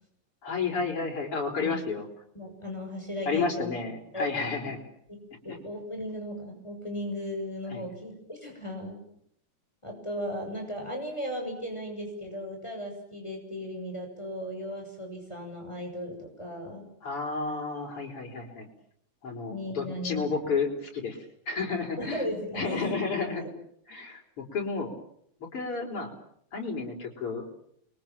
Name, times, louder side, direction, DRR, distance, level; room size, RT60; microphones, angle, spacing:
voice 1, 0.4-2.1 3.3-4.8 5.5-5.6 7.7-7.8 17.0-18.7 19.2-21.2 21.5-22.2 22.6-23.4 23.9-24.9 25.5-26.1 26.5-27.4, left 4 dB, 90° left, 1 dB, 5.6 m, -31 dB
voice 2, 2.3-3.8 4.1-4.7 5.4-9.0 9.8-16.8 19.5-20.6 22.0-23.0 23.4-23.5, equal, 10° left, 1 dB, 7.0 m, -36 dB
30.0 x 23.0 x 7.5 m, 0.69 s
omnidirectional pair, 2.4 m